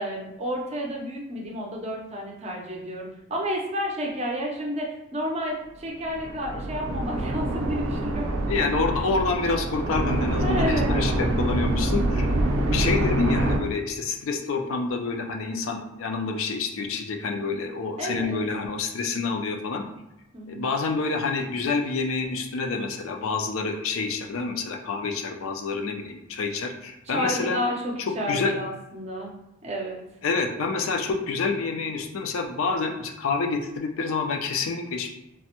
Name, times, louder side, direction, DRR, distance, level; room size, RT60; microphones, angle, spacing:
voice 1, 0.0-8.4 10.4-10.9 18.0-18.4 20.3-20.6 27.1-29.3 29.6-30.0, equal, 30° right, -1 dB, 0.5 m, -30 dB
sound 1, 6.1-13.6, right 1 dB, 85° right, 0.4 m, -25 dB
voice 2, 8.5-19.9 20.5-27.6 28.3-28.5 30.2-35.1, left 4 dB, 70° left, 4 dB, 0.4 m, -28 dB
3.3 x 2.0 x 2.8 m, 0.93 s
head